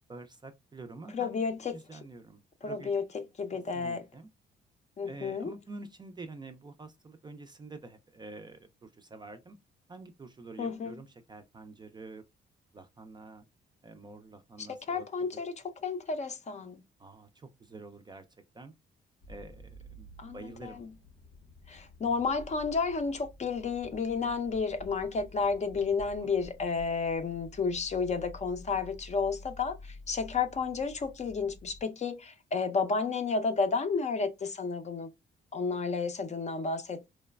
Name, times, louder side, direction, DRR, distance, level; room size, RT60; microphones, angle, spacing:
voice 1, 0.1-1.4 1.7-2.9 3.7-4.3 5.1-9.6 9.9-12.2 12.7-13.4 13.8-15.3 17.0-18.2 18.5-18.7 19.3-20.1 20.3-20.9 26.2-26.3, right 3 dB, 20° right, 0.4 m, -47 dB
voice 2, 1.1-2.0 2.6-3.0 3.4-4.1 5.0-5.5 10.6-10.9 14.6-15.5 15.8-16.8 20.2-20.9 21.7-35.1 35.5-37.1, left 4 dB, 35° left, 0.5 m, -31 dB
sound 1, 19.2-31.8, left 1 dB, 70° left, 0.7 m, -50 dB
3.1 x 2.1 x 2.2 m
cardioid pair, 90°, 20 cm